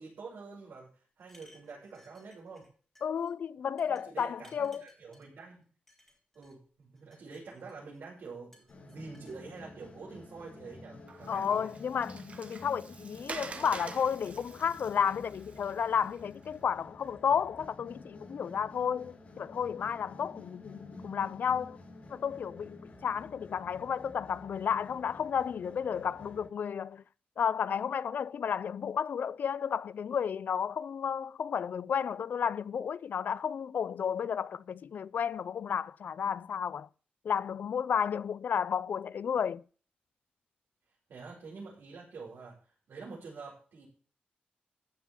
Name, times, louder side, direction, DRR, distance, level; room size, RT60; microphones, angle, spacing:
voice 1, 0.0-2.6 3.9-5.7 6.3-11.7 41.1-43.9, right 4 dB, 80° right, 6.2 m, -47 dB
sound 1, 1.2-2.7 2.9-3.3 3.8-5.3 5.9-6.5 7.0-8.0 8.5-9.4, left 1 dB, 10° left, 3.4 m, -62 dB
voice 2, 3.0-4.8 11.3-21.8 22.1-27.0 27.4-36.9 37.2-39.6, left 7 dB, 70° left, 0.5 m, -32 dB
sound 2, 8.7-26.5, left 2 dB, 40° left, 6.5 m, -51 dB
Water, 11.1-16.4, right 4 dB, 40° right, 1.3 m, -47 dB
15.0 x 6.1 x 7.1 m
wide cardioid pair, 170°, 3 cm